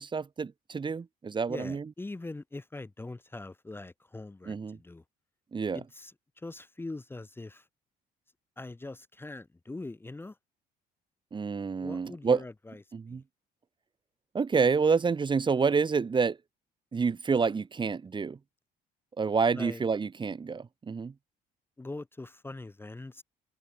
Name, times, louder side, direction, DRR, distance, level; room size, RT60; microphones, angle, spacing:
voice 1, 0.0-1.8 4.5-4.8 5.5-5.8 11.3-12.4 12.9-13.2 14.3-16.4 16.9-18.4 19.2-21.1, right 5 dB, 30° right, 2.1 m, -28 dB
voice 2, 1.5-5.0 5.7-7.7 8.6-10.4 11.8-12.8 13.1-13.2 19.5-19.8 21.8-23.2, left 2 dB, 15° left, 1.7 m, -42 dB
cardioid pair, 110°, 17 cm